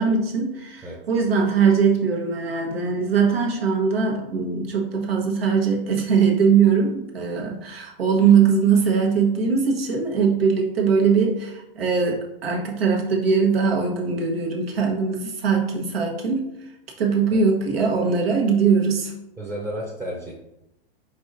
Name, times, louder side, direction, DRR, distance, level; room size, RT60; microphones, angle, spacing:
voice 1, 0.0-16.5 17.0-19.1, right 5 dB, 85° right, 0 dB, 1.2 m, -21 dB
voice 2, 19.4-20.3, equal, 15° right, -3 dB, 0.7 m, -32 dB
4.7 x 4.1 x 2.6 m, 0.88 s
hypercardioid pair, 120°, 29 cm